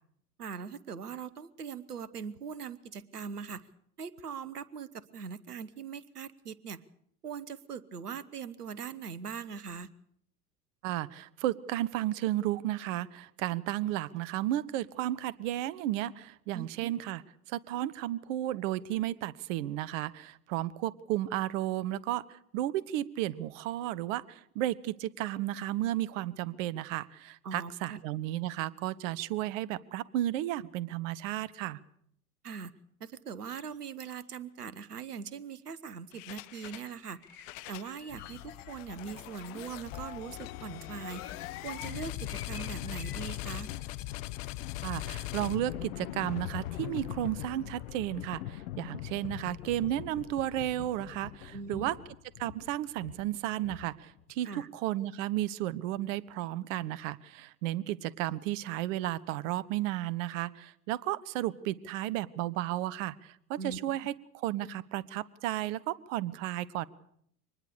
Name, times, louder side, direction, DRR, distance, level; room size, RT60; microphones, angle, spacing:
voice 1, 0.4-3.7 4.0-6.8 7.2-9.9 16.5-16.9 27.4-28.0 32.4-32.7 33.0-37.2 37.7-41.2 41.6-43.7 51.5-51.9 54.4-54.7 63.6-63.8, right 6 dB, 85° right, 18 dB, 1.2 m, -41 dB
voice 2, 10.8-17.2 17.5-31.8 44.8-52.0 52.4-66.9, right 14 dB, 55° right, 20 dB, 1.1 m, -33 dB
sound 1, 33.4-33.8 34.1-34.2 34.6-34.8 36.7-39.1 40.0-44.2 44.6-44.7, left 4 dB, 80° left, 3.4 m, -54 dB
sound 2, 36.1-36.9 37.2-54.2, left 15 dB, 55° left, 1.0 m, -41 dB
25.0 x 20.0 x 6.8 m, 0.69 s
figure-of-eight pair, 80°, 45 cm